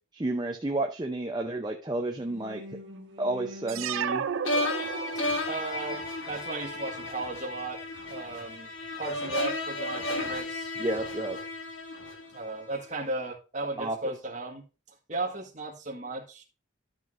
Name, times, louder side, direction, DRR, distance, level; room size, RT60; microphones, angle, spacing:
voice 1, 0.1-2.6 3.2-4.3 10.8-11.4 13.8-14.1, right 2 dB, 20° right, 3 dB, 0.5 m, -31 dB
sound 1, 2.2-7.2, right 2 dB, 55° right, 1.6 m, -46 dB
sound 2, 3.7-5.5, right 7 dB, 70° right, 0.4 m, -32 dB
sound 3, 4.4-12.6, left 2 dB, 65° left, 1.5 m, -33 dB
voice 2, 5.4-6.0 6.3-7.8 8.1-8.7 9.0-10.7 12.3-14.6 15.1-16.4, right 2 dB, 35° right, 0 dB, 1.6 m, -35 dB
12.0 x 6.0 x 2.5 m, 0.32 s
head